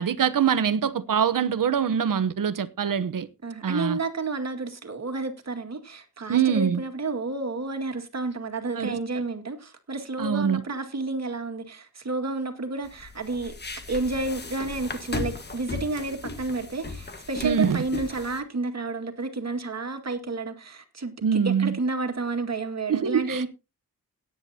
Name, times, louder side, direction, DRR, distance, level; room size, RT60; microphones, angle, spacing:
voice 1, 0.0-3.3 3.6-4.0 6.3-6.8 8.8-9.0 10.2-10.6 17.4-17.8 21.2-21.8 22.9-23.5, right 7 dB, 65° right, 1.0 m, -24 dB
voice 2, 3.4-13.5 13.9-23.5, right 3 dB, 45° right, 2.1 m, -31 dB
sound 1, 12.8-18.4, left 3 dB, 30° left, 1.5 m, -36 dB
17.0 x 9.9 x 2.8 m
wide cardioid pair, 100°, 35 cm